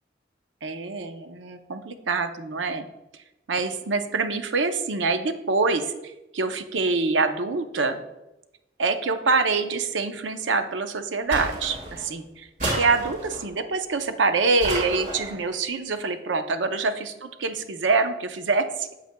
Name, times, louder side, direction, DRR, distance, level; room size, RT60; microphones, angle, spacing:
voice 1, 0.6-2.9 3.5-8.0 8.8-12.5 12.8-18.9, right 4 dB, 90° right, 8 dB, 0.6 m, -25 dB
sound 1, 11.3-12.1 12.6-13.5 14.6-15.4, right 1 dB, 45° right, 2.1 m, -31 dB
8.3 x 7.7 x 2.2 m, 0.93 s
head